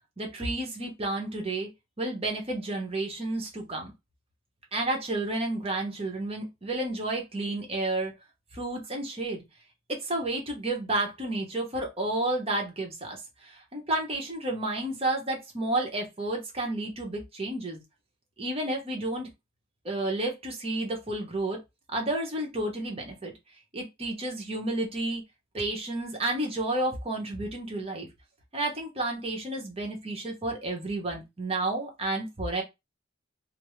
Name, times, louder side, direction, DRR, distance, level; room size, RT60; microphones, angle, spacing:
voice 1, 0.2-1.7 2.0-3.9 4.7-8.1 8.5-9.4 9.9-17.8 18.4-19.3 19.8-21.6 21.9-23.3 23.7-25.2 25.5-28.1 28.5-32.6, right 2 dB, 30° right, 1 dB, 0.9 m, -31 dB
3.4 x 2.0 x 3.1 m, 0.22 s
head